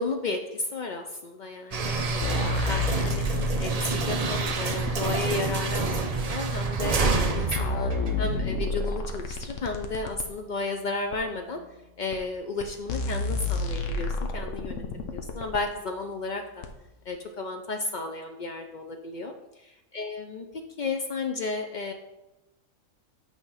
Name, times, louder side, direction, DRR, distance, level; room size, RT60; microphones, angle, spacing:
voice 1, 0.0-7.9 8.2-11.6 12.0-14.8 15.1-16.6 17.1-19.3 19.6-20.5 20.8-21.9, left 3 dB, 85° left, 4 dB, 0.4 m, -33 dB
sound 1, 1.7-8.7, right 4 dB, 50° right, 0.4 m, -28 dB
sound 2, 2.2-4.9 5.9-6.0 6.8-6.9 7.3-10.3 11.1-11.2 12.1-12.2 12.6-12.7 12.9-15.6 16.6-16.7, left 3 dB, 60° left, 1.1 m, -30 dB
9.1 x 3.6 x 5.6 m, 0.96 s
omnidirectional pair, 1.5 m